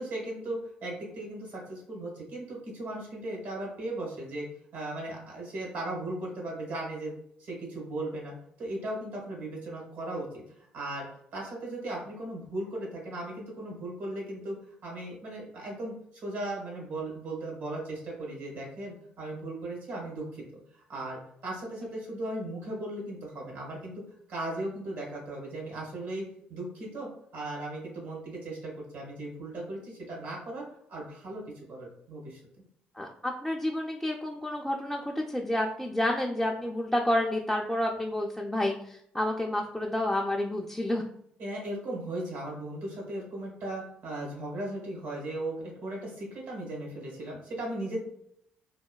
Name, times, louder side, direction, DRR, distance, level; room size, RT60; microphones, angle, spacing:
voice 1, 0.0-4.5 4.7-7.1 7.4-11.1 11.3-14.6 14.8-20.2 20.7-24.0 24.3-30.6 30.9-31.4 31.7-32.4 41.4-48.0, right 1 dB, 70° right, -3 dB, 1.3 m, -37 dB
voice 2, 33.0-41.0, left 1 dB, 5° left, 0 dB, 0.3 m, -29 dB
3.0 x 2.1 x 2.2 m, 0.70 s
hypercardioid pair, 55°, 4 cm